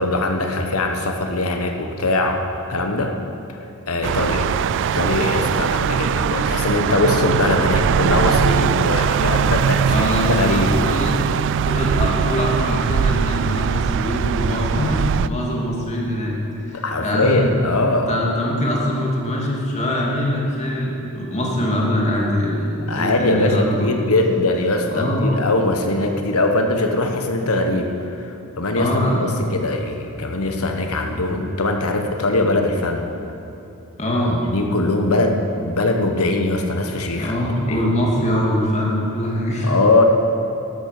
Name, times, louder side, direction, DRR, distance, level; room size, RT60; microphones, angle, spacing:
voice 1, 0.0-3.2 3.5-3.6 3.9-4.5 4.8-9.9 10.2-10.7 16.7-18.1 22.9-33.1 34.3-37.3 37.7-37.9 39.6-40.0, left 2 dB, 70° left, 4 dB, 1.3 m, -21 dB
sound 1, 4.0-15.3, right 7 dB, 55° right, 0.3 m, -21 dB
voice 2, 9.8-11.2 11.6-16.4 16.6-17.5 18.1-24.0 24.9-25.3 28.7-29.3 34.0-34.4 37.2-39.7, equal, 30° left, -3 dB, 2.7 m, -22 dB
13.0 x 12.5 x 6.7 m, 2.8 s
head